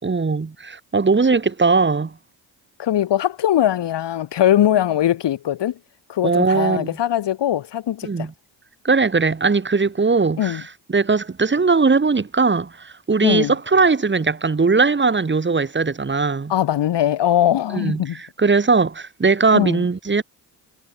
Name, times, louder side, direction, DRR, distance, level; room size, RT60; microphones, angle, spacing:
voice 1, 0.0-2.1 6.2-6.9 8.0-8.3 8.8-10.6 10.9-16.5 17.7-20.2, right 4 dB, 25° right, 3.5 m, -19 dB
voice 2, 2.8-5.8 6.1-8.3 10.4-10.6 13.2-13.5 16.5-18.2 19.5-19.8, left 11 dB, 75° left, 4.8 m, -20 dB
cardioid pair, 110°, 42 cm